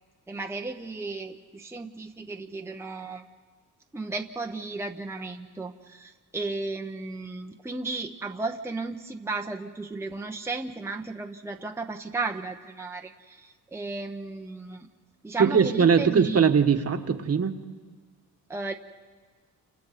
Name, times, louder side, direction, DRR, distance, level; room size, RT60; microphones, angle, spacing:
voice 1, 0.3-3.2 3.9-14.9 15.2-16.4 18.5-18.7, right 3 dB, 5° right, 3 dB, 0.9 m, -34 dB
voice 2, 15.4-17.5, right 6 dB, 40° right, 7 dB, 1.4 m, -21 dB
29.0 x 26.5 x 4.1 m, 1.5 s
cardioid pair, 100°, 36 cm